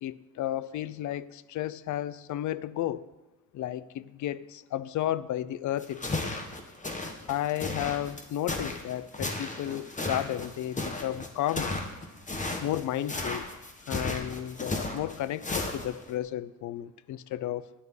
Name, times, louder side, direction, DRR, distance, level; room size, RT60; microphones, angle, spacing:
voice 1, 0.0-3.1 3.5-6.3 7.3-11.8 12.6-13.5 13.9-17.6, left 12 dB, 75° left, 18 dB, 0.6 m, -33 dB
sound 1, 5.8-16.1, left 2 dB, 25° left, 1.9 m, -34 dB
10.0 x 9.5 x 8.2 m, 1.1 s
cardioid pair, 90°, 30 cm